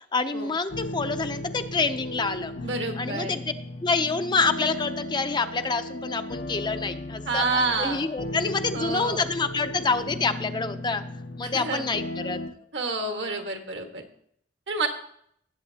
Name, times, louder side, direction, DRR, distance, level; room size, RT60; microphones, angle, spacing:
voice 1, 0.1-2.5 3.0-3.4 3.8-11.0 11.4-12.4, left 4 dB, 25° left, 8 dB, 0.6 m, -27 dB
sound 1, 0.7-12.5, left 1 dB, 75° left, 0.9 m, -36 dB
voice 2, 2.6-3.4 7.3-8.0 8.7-9.3 11.4-11.9 12.7-14.0 14.7-14.9, right 3 dB, 70° right, 4 dB, 1.5 m, -29 dB
18.0 x 8.1 x 2.8 m, 0.68 s
head